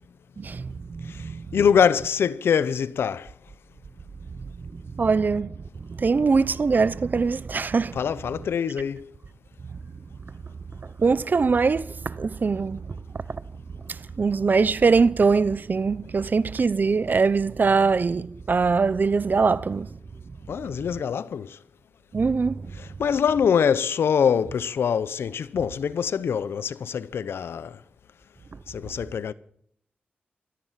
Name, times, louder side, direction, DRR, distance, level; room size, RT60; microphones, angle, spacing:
voice 1, 0.4-1.5 4.6-5.5 5.8-8.0 11.0-12.9 13.3-13.4 13.9-19.9 22.1-22.7, right 4 dB, 50° right, 0.8 m, -22 dB
voice 2, 1.0-3.3 7.9-9.1 20.5-21.6 22.8-27.8 28.7-29.3, left 7 dB, 85° left, 0.7 m, -24 dB
17.5 x 14.0 x 5.8 m
cardioid pair, 60°, 4 cm